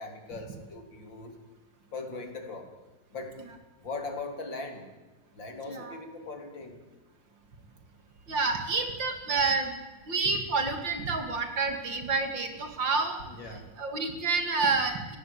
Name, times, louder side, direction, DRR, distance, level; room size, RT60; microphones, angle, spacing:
voice 1, 0.0-1.4 1.9-2.7 3.1-3.4 3.8-4.9 5.3-6.8 13.2-13.7, left 3 dB, 70° left, 4 dB, 4.3 m, -40 dB
voice 2, 5.7-6.0 8.3-9.8 10.1-13.2 13.8-15.2, right 4 dB, 70° right, 6 dB, 3.4 m, -28 dB
29.5 x 17.5 x 8.8 m, 1.2 s
omnidirectional pair, 2.1 m